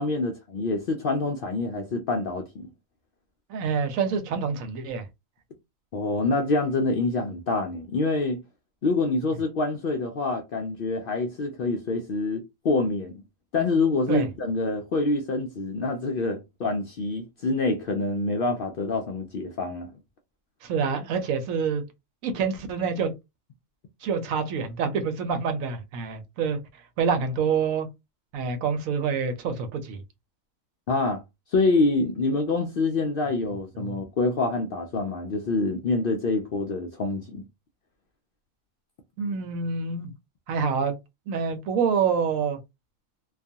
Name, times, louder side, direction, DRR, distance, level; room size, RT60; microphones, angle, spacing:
voice 1, 0.0-2.7 5.9-8.4 8.8-13.2 13.5-19.9 30.9-31.2 31.5-37.4, left 3 dB, 65° left, 0.5 m, -26 dB
voice 2, 3.5-5.1 14.1-14.3 20.6-21.8 22.2-23.1 24.0-26.6 27.0-27.9 28.3-30.0 33.8-34.0 39.2-40.1 40.5-41.0 41.3-42.6, right 6 dB, 85° right, 1.1 m, -27 dB
2.4 x 2.3 x 2.6 m
omnidirectional pair, 1.4 m